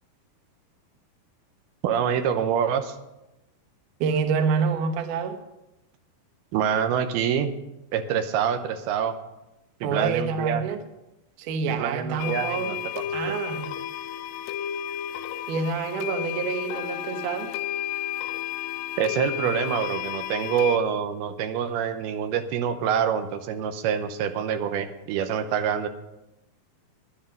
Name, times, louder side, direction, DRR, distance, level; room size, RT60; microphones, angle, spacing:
voice 1, 1.8-3.0 6.5-7.5 7.9-9.2 9.8-10.6 11.7-13.4 19.0-25.9, right 8 dB, 85° right, 8 dB, 2.7 m, -26 dB
voice 2, 4.0-5.4 9.8-10.8 11.4-12.8 13.1-13.7 15.5-17.5, right 5 dB, 65° right, 7 dB, 2.3 m, -27 dB
sound 1, 12.2-20.8, left 10 dB, 90° left, 2.6 m, -32 dB
13.5 x 10.5 x 5.3 m, 0.92 s
omnidirectional pair, 4.4 m